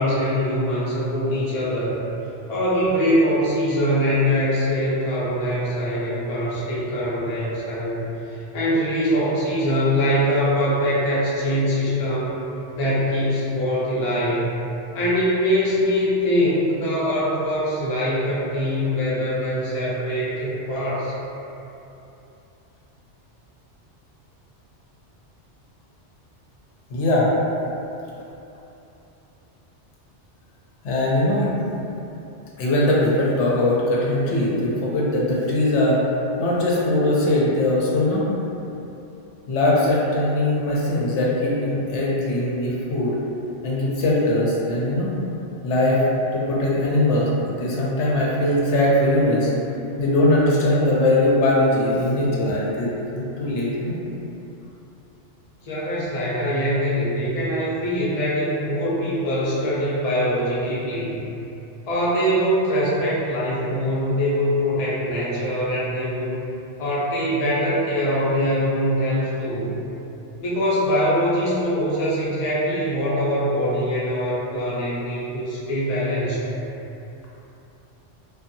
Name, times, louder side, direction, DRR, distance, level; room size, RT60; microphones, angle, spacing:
voice 1, 0.0-2.0 2.5-12.4 12.7-14.6 14.9-21.1 55.6-61.2 61.9-66.3 66.8-69.8 70.4-76.5, equal, 45° left, -8 dB, 0.5 m, -23 dB
voice 2, 26.9-27.3 30.8-31.8 32.6-36.0 36.4-38.2 39.5-43.2 43.6-45.1 45.6-46.0 46.3-49.5 50.0-54.0, left 1 dB, 75° left, -5 dB, 0.9 m, -21 dB
2.6 x 2.3 x 2.5 m, 2.9 s
omnidirectional pair, 1.2 m